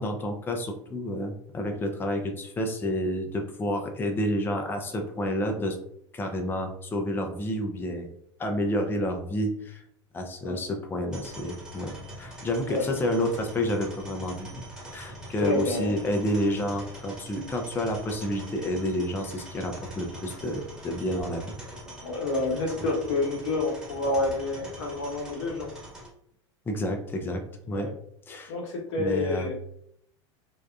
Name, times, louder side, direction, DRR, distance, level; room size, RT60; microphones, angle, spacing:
voice 1, 0.0-5.8 6.1-8.1 8.4-9.8 10.1-14.5 14.9-21.5 26.7-27.4 27.7-27.9 28.3-28.5 29.0-29.5, left 1 dB, 15° left, 4 dB, 0.4 m, -29 dB
sound 1, 11.1-26.1, right 1 dB, 5° right, 1.1 m, -43 dB
voice 2, 15.4-15.9 22.0-25.7 27.7-27.9 28.5-29.5, left 2 dB, 80° left, 0 dB, 0.9 m, -28 dB
2.7 x 2.2 x 2.3 m, 0.70 s
hypercardioid pair, 100°, 15 cm